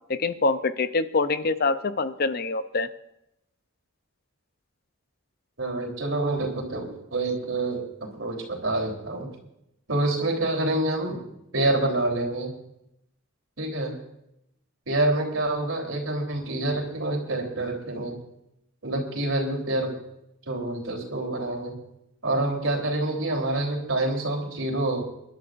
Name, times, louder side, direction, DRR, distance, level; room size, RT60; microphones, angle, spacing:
voice 1, 0.1-2.9, left 3 dB, 50° left, 11 dB, 0.6 m, -25 dB
voice 2, 5.6-9.3 9.9-11.2 11.5-12.5 13.6-13.9 14.9-18.2 18.8-19.9 20.5-21.8 22.2-25.0, right 2 dB, 75° right, 1 dB, 3.6 m, -27 dB
26.0 x 11.5 x 2.6 m, 0.81 s
head